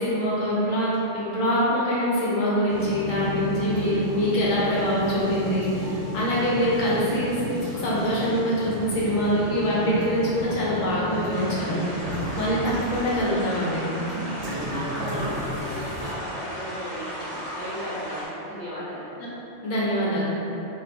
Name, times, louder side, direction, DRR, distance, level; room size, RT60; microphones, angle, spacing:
voice 1, 0.0-7.4 7.8-11.8 12.1-13.8 19.2-19.3 19.6-20.2, equal, 85° left, -7 dB, 1.3 m, -24 dB
sound 1, 2.7-16.1, equal, 70° right, 0.9 m, -33 dB
voice 2, 3.6-4.0 12.6-13.2 14.6-17.3 17.5-19.1, equal, 30° right, -11 dB, 1.0 m, -36 dB
sound 2, 11.3-18.2, equal, 10° left, 1.1 m, -36 dB
4.4 x 2.8 x 2.6 m, 3.0 s
omnidirectional pair, 1.3 m